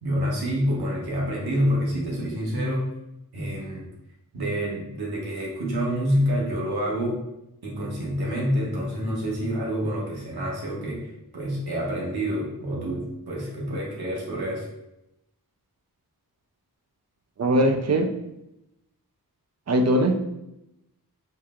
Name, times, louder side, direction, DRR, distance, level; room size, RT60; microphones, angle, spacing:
voice 1, 0.0-2.9 3.3-3.8 4.3-7.2 7.6-14.7, equal, 85° right, -4 dB, 1.2 m, -27 dB
voice 2, 17.4-18.1 19.7-20.1, right 1 dB, 45° right, 4 dB, 0.5 m, -20 dB
4.5 x 2.1 x 3.6 m, 0.88 s
wide cardioid pair, 95°, 37 cm